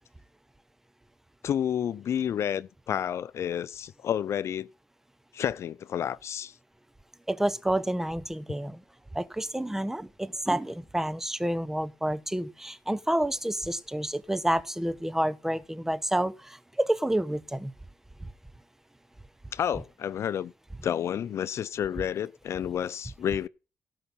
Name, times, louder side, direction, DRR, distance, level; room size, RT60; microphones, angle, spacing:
voice 1, 1.4-4.7 5.3-6.5 19.5-20.5 20.8-23.5, left 9 dB, 65° left, 0.5 m, -30 dB
voice 2, 7.3-8.8 9.1-17.7, right 1 dB, 10° right, 1.1 m, -29 dB
17.0 x 5.7 x 5.5 m
cardioid pair, 70°, 5 cm